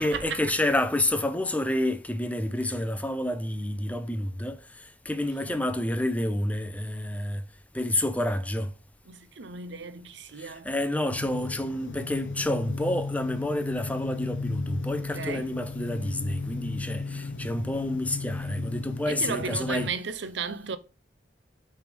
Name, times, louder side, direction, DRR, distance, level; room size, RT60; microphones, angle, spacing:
voice 1, 0.0-7.4 7.7-8.7 10.4-19.9, left 1 dB, 10° left, 0.5 m, -29 dB
voice 2, 9.1-10.7 15.1-15.5 19.1-20.8, right 5 dB, 70° right, 0.6 m, -34 dB
sound 1, 11.1-19.9, left 3 dB, 80° left, 0.6 m, -35 dB
6.3 x 3.4 x 5.2 m
head